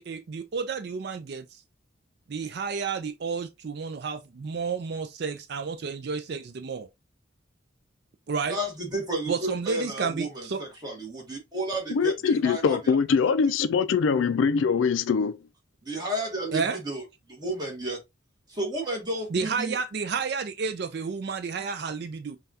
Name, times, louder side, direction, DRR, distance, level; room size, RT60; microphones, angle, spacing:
voice 1, 0.0-1.6 2.3-6.9 8.3-8.6 9.3-10.6 16.5-16.8 19.3-22.4, right 5 dB, 55° right, 0.4 m, -31 dB
voice 2, 8.5-12.8 15.8-17.0 17.3-18.0 18.5-19.8, right 1 dB, 20° right, 1.3 m, -32 dB
voice 3, 11.9-15.4, left 5 dB, 75° left, 0.4 m, -23 dB
5.4 x 2.3 x 2.7 m
head